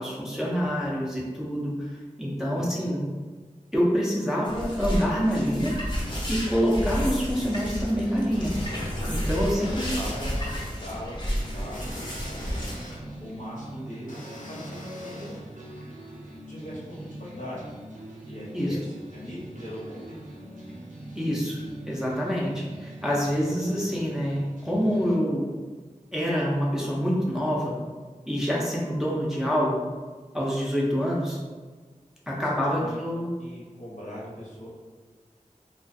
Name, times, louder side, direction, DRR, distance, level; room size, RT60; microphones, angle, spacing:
voice 1, 0.0-3.0 3.7-5.7 6.3-8.6 9.1-10.0 18.5-18.8 21.1-25.5 26.1-27.8 28.3-29.9 30.3-31.4 32.3-33.3, equal, 5° right, -5 dB, 0.4 m, -26 dB
voice 2, 2.5-3.0 9.3-9.5 9.9-11.2 11.4-12.1 13.2-15.4 16.5-17.6 18.3-20.1 32.3-32.5 32.8-33.0 33.4-34.7, equal, 70° left, -8 dB, 1.0 m, -40 dB
sound 1, 4.4-12.7, equal, 35° left, 0.7 m, -31 dB
sound 2, 9.3-10.6 11.7-13.0 14.1-15.4, left 1 dB, 85° left, 0.5 m, -43 dB
sound 3, 11.3-25.2, right 1 dB, 75° right, 0.5 m, -43 dB
2.4 x 2.3 x 2.5 m, 1.4 s
wide cardioid pair, 60°, 13 cm